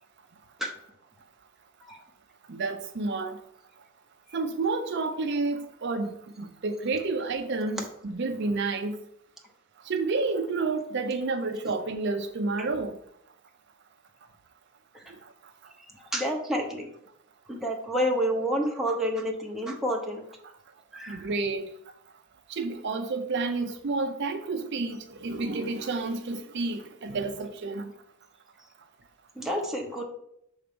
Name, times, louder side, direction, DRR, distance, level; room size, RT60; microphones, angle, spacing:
voice 1, 2.5-3.4 4.3-9.0 9.9-13.0 21.1-21.7 22.5-27.9, right 3 dB, 55° right, 6 dB, 0.5 m, -30 dB
voice 2, 15.9-16.9 17.5-20.2 20.9-21.3 29.3-30.0, equal, ahead, -1 dB, 1.0 m, -29 dB
6.4 x 3.4 x 5.2 m, 0.74 s
head